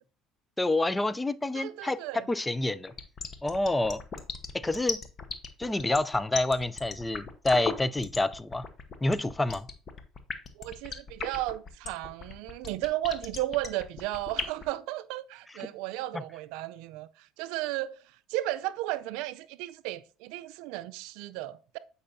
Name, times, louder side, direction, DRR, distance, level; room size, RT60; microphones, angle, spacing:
voice 1, 0.6-2.0 2.3-2.9 3.4-4.0 4.5-5.0 5.6-8.7 9.0-9.7 16.1-16.2, left 2 dB, 15° left, 0.4 m, -28 dB
voice 2, 1.5-2.3 5.8-6.0 10.6-18.0 18.3-21.8, right 16 dB, 80° right, 0.4 m, -34 dB
sound 1, 2.9-14.6, left 5 dB, 40° left, 1.0 m, -36 dB
8.6 x 5.4 x 2.6 m
supercardioid pair, 90°, 0 cm